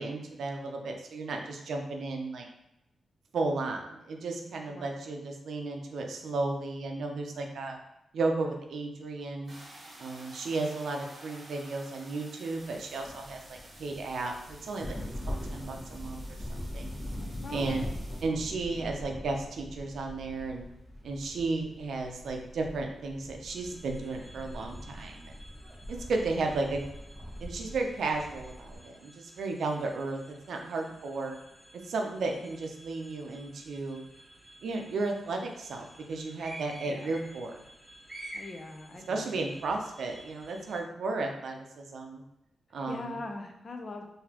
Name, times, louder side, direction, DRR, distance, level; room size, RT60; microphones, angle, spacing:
voice 1, 0.0-2.5 3.3-7.8 8.1-9.5 10.0-14.9 15.3-16.4 16.7-16.9 17.5-17.9 18.2-20.7 21.0-25.3 25.9-26.8 27.4-30.2 30.5-31.4 31.8-34.0 34.6-37.5 39.1-42.2 42.7-43.1, right 3 dB, 75° right, 3 dB, 0.5 m, -34 dB
sound 1, 9.4-18.2, right 1 dB, 45° right, 0.9 m, -52 dB
sound 2, 12.8-28.8, left 1 dB, 25° left, 1.3 m, -42 dB
voice 2, 17.4-18.0 36.9-37.2 38.3-39.4 42.9-44.1, left 2 dB, 40° left, 4 dB, 0.5 m, -42 dB
sound 3, 23.5-40.8, right 1 dB, 25° right, 1.1 m, -52 dB
3.9 x 2.7 x 2.9 m, 0.86 s
cardioid pair, 105°, 0 cm